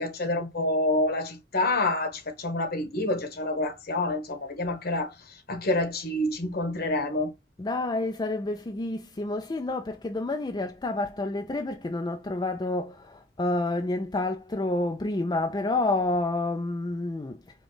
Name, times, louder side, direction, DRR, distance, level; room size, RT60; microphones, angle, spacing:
voice 1, 0.0-5.1 5.5-7.3, left 2 dB, 60° left, 1.2 m, -27 dB
voice 2, 7.6-17.4, left 2 dB, 25° left, 0.4 m, -29 dB
5.1 x 2.3 x 3.9 m
head